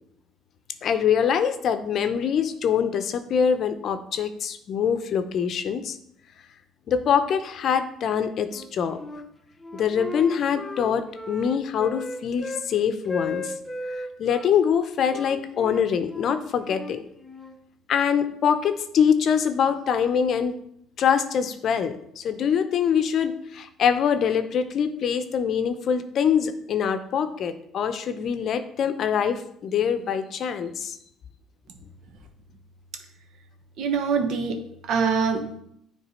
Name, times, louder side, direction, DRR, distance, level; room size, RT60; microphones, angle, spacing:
voice 1, 0.8-6.0 6.9-9.0 9.7-13.5 13.9-17.0 17.9-20.6 21.0-31.0, left 7 dB, 55° left, 10 dB, 0.6 m, -24 dB
Wind instrument woodwind instrument, 8.4-9.3 9.6-12.7 13.0-14.5 15.1-17.6, left 2 dB, 15° left, 0.8 m, -36 dB
voice 2, 33.8-35.6, right 5 dB, 65° right, 5 dB, 1.1 m, -25 dB
9.3 x 3.3 x 4.4 m, 0.73 s
supercardioid pair, 90°, 0 cm